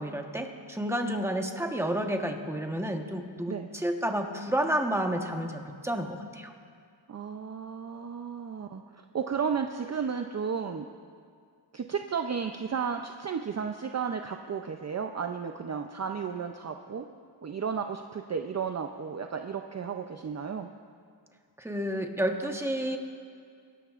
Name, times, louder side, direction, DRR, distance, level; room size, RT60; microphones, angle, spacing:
voice 1, 0.0-6.5 21.6-23.0, right 1 dB, 5° right, 3 dB, 1.1 m, -30 dB
voice 2, 7.1-8.8 9.1-10.9 11.7-17.1 17.4-20.7, right 6 dB, 35° right, 5 dB, 0.5 m, -33 dB
25.0 x 13.0 x 2.5 m, 2.2 s
wide cardioid pair, 90°, 45 cm